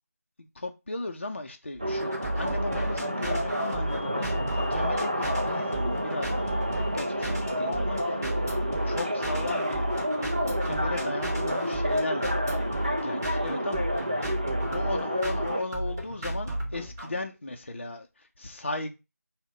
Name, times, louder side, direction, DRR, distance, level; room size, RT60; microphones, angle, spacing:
voice 1, 0.4-12.3 12.8-14.3 14.7-19.0, left 2 dB, 45° left, 0.4 m, -37 dB
sound 1, 1.7-17.1, right 1 dB, 10° right, 0.8 m, -33 dB
sound 2, 1.8-15.6, equal, 30° right, 0.3 m, -30 dB
3.7 x 2.1 x 3.7 m
figure-of-eight pair, 175°, 9 cm